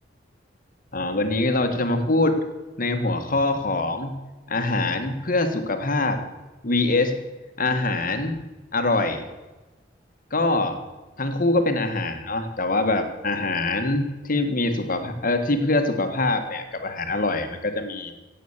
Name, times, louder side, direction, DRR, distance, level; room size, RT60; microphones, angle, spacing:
voice 1, 0.9-2.4 2.8-4.2 4.5-6.2 6.6-7.1 7.6-8.4 8.7-9.3 10.3-10.8 11.2-18.1, left 2 dB, 50° left, 7 dB, 1.6 m, -24 dB
16.5 x 8.4 x 7.3 m, 1.1 s
head